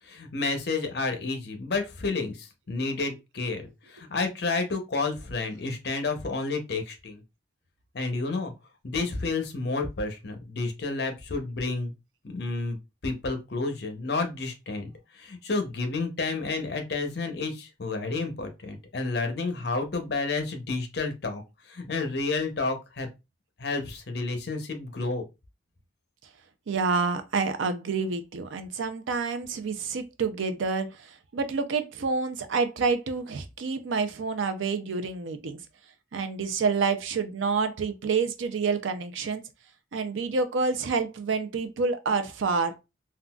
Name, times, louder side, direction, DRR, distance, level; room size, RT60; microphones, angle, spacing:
voice 1, 0.0-7.2 7.9-8.5 8.8-11.9 12.2-12.8 13.0-21.4 21.7-23.1 23.6-25.3, left 3 dB, 55° left, 0.7 m, -30 dB
voice 2, 26.7-30.9 31.3-35.6 36.1-39.4 39.9-42.7, right 4 dB, 85° right, 0.5 m, -28 dB
3.8 x 2.3 x 2.3 m
head